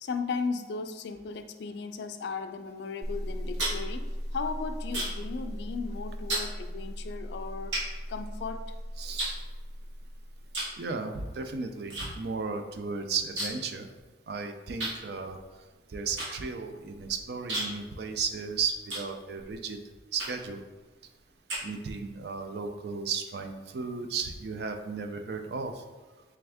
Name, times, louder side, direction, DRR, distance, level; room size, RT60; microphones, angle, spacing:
voice 1, 0.0-4.0 4.3-7.8 8.1-8.6, left 4 dB, 65° left, 8 dB, 0.3 m, -36 dB
sound 1, 3.0-10.8, equal, 20° right, 0.6 m, -38 dB
sound 2, 3.3-5.3 5.6-5.9 6.3-6.5 7.1-7.2 7.7-8.7 9.2-10.0 10.5-10.8 11.1-12.1 12.4-12.5 12.7-13.7 14.0-14.1 14.8-19.6 20.1-20.6 21.1-22.1, right 1 dB, 85° right, 1.3 m, -35 dB
voice 2, 9.0-9.4 10.8-13.9 14.3-15.4 15.9-19.8 20.1-20.6 21.6-25.8, right 5 dB, 60° right, 6 dB, 0.4 m, -34 dB
3.4 x 3.4 x 3.4 m, 1.3 s
head